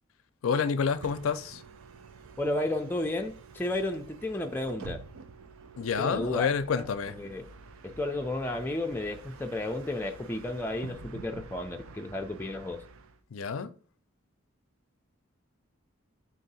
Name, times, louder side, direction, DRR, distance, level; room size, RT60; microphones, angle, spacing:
voice 1, 0.4-1.6 5.8-7.2 13.3-13.7, left 6 dB, 85° left, 0.4 m, -29 dB
Bus, 0.8-13.2, right 4 dB, 90° right, 0.5 m, -49 dB
voice 2, 2.4-5.0 6.0-6.5 6.8-7.5 7.8-12.8, left 1 dB, 10° left, 0.4 m, -33 dB
3.9 x 2.7 x 4.0 m
head